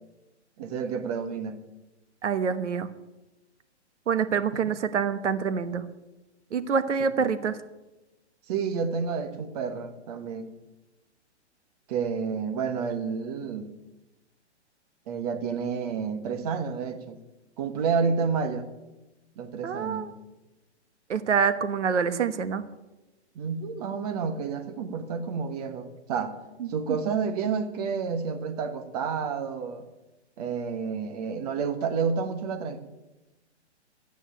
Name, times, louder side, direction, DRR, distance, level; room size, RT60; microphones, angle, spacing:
voice 1, 0.6-1.6 7.2-7.3 8.5-10.5 11.9-13.7 15.1-17.2 17.6-18.7 19.4-20.1 23.3-26.4 26.7-29.8 30.4-32.8, right 5 dB, 35° right, 7 dB, 1.4 m, -30 dB
voice 2, 2.2-2.9 4.1-5.8 6.5-7.6 19.6-20.1 21.1-22.6 26.6-26.7, right 6 dB, 85° right, 12 dB, 1.3 m, -26 dB
13.0 x 9.2 x 8.8 m, 1.0 s
hypercardioid pair, 155°, 35 cm